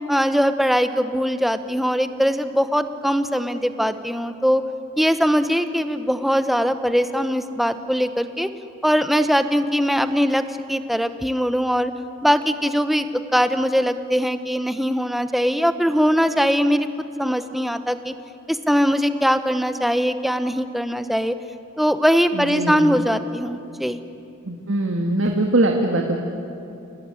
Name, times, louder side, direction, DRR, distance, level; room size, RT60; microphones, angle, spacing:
voice 1, 0.1-4.6 5.0-8.5 8.8-11.9 12.2-16.9 17.2-18.1 18.5-21.4 21.8-24.0, equal, ahead, 9 dB, 0.9 m, -21 dB
voice 2, 22.3-23.0 24.4-26.2, right 2 dB, 75° right, 2 dB, 1.9 m, -22 dB
29.0 x 18.5 x 9.8 m, 2.8 s
head